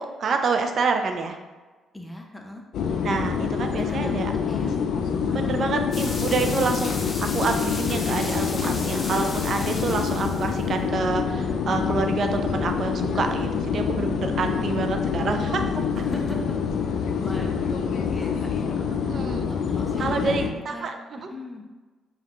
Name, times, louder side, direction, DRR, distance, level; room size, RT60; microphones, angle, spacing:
voice 1, 0.0-1.4 3.0-4.3 5.3-15.9 19.1-19.5 20.0-21.0 21.2-21.3, right 4 dB, 55° right, 5 dB, 0.5 m, -27 dB
voice 2, 1.9-2.6 3.8-4.7 5.3-6.1 14.4-14.9 15.8-18.9 19.5-20.9 21.3-21.6, left 1 dB, 10° left, 1 dB, 0.7 m, -39 dB
sound 1, 2.7-20.5, left 6 dB, 75° left, 0.4 m, -26 dB
sound 2, 5.9-10.7, left 3 dB, 40° left, 0.7 m, -35 dB
5.5 x 2.4 x 3.0 m, 1.3 s
cardioid pair, 90°, 0 cm